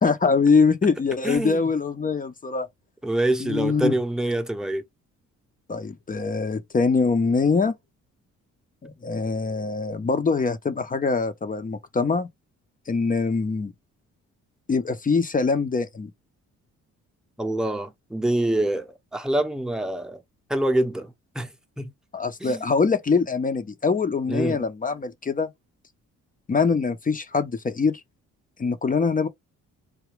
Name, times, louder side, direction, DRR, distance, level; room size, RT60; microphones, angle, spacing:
voice 1, 0.0-2.7 3.4-3.9 5.7-7.7 8.8-12.3 12.9-13.7 14.7-16.1 22.1-25.5 26.5-28.0 28.6-29.3, left 4 dB, 30° left, 0.7 m, -23 dB
voice 2, 1.2-1.7 3.0-4.8 8.8-8.9 17.4-20.2 20.5-21.5 21.8-21.9 22.4-22.6 24.3-24.6, right 1 dB, ahead, 0.8 m, -26 dB
4.8 x 2.2 x 3.2 m
cardioid pair, 90°, 30 cm